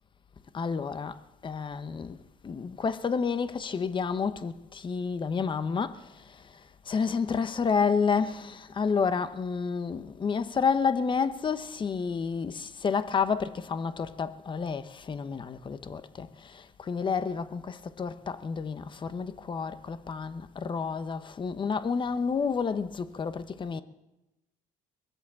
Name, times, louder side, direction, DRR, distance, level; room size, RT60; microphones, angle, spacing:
voice 1, 0.5-2.2 2.4-23.8, left 5 dB, 30° left, 1.0 m, -30 dB
22.5 x 8.2 x 7.5 m
cardioid pair, 100°, 16 cm